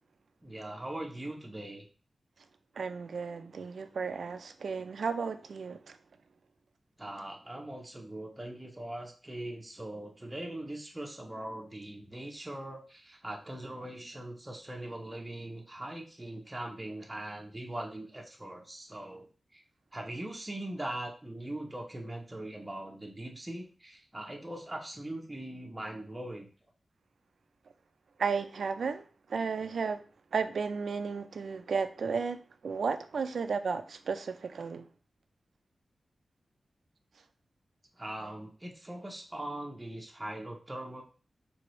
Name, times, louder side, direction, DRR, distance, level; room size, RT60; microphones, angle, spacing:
voice 1, 0.4-1.9 7.0-19.6 19.9-26.5 38.0-41.0, right 1 dB, 15° right, 0.6 m, -41 dB
voice 2, 2.8-6.0 28.2-29.0 29.3-30.0 30.3-32.4 32.6-34.9, right 5 dB, 75° right, 0.4 m, -33 dB
4.7 x 3.4 x 3.0 m
wide cardioid pair, 160°, 0 cm